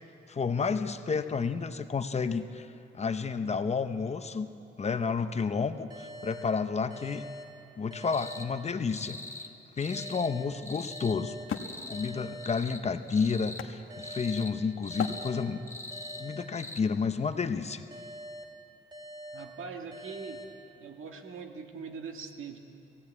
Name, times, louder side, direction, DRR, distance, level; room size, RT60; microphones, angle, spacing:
voice 1, 0.3-2.7 2.9-4.5 4.8-7.2 7.8-9.2 9.8-11.3 11.9-15.6 16.2-17.8, left 5 dB, 30° left, 9 dB, 0.6 m, -31 dB
sound 1, 5.9-9.2 9.9-13.2 13.9-17.2 17.9-21.2, equal, 20° right, 2.2 m, -47 dB
sound 2, 8.1-8.5 8.9-9.5 9.8-10.3 10.6-11.2 11.5-12.1 12.4-12.8 13.1-13.6 14.0-14.5 14.8-15.3 15.7-16.2 16.5-16.8, left 2 dB, 10° left, 1.0 m, -43 dB
Wood, 9.7-14.4 15.0-15.8, left 7 dB, 80° left, 1.2 m, -39 dB
voice 2, 19.3-20.5 20.8-22.6, right 5 dB, 85° right, 3 dB, 1.7 m, -42 dB
17.0 x 16.5 x 9.5 m, 2.7 s
wide cardioid pair, 165°, 21 cm